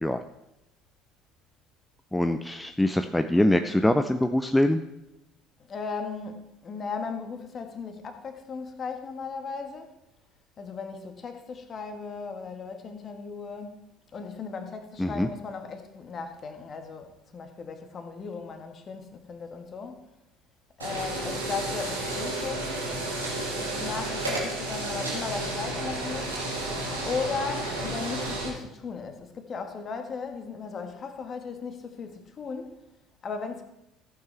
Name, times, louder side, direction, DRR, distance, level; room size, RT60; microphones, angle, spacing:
voice 1, 2.1-4.8 15.0-15.3, left 1 dB, 5° left, 8 dB, 0.5 m, -23 dB
voice 2, 5.6-9.9 10.6-13.8 14.1-20.1 20.8-22.8 23.5-26.4 27.0-32.9 33.2-33.6, left 5 dB, 35° left, 6 dB, 1.6 m, -36 dB
sound 1, 20.8-28.5, right 2 dB, 80° right, 2.5 m, -32 dB
15.0 x 8.8 x 3.4 m, 0.89 s
figure-of-eight pair, 60°, 0 cm